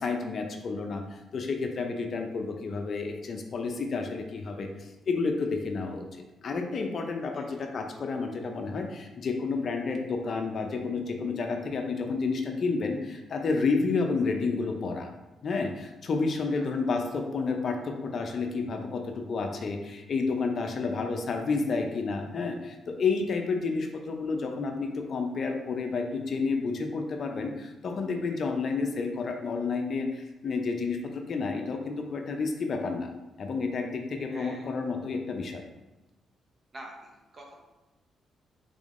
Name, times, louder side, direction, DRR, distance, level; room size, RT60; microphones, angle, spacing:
voice 1, 0.0-15.1 15.4-33.1 33.4-35.6, left 4 dB, 55° left, 4 dB, 0.4 m, -30 dB
voice 2, 7.3-7.7 16.5-16.9 34.3-34.7 36.7-37.6, right 1 dB, 35° right, 0 dB, 0.8 m, -47 dB
3.6 x 3.5 x 2.5 m, 1.0 s
cardioid pair, 85°, 0 cm